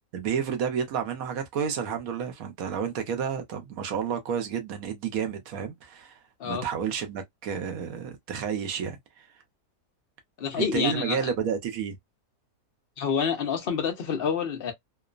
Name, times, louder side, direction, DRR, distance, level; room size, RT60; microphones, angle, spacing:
voice 1, 0.1-6.2 6.4-9.0 10.6-12.0, right 7 dB, 65° right, 1.0 m, -30 dB
voice 2, 10.4-11.3 13.0-14.7, left 6 dB, 55° left, 0.6 m, -28 dB
2.9 x 2.0 x 2.3 m
omnidirectional pair, 1.7 m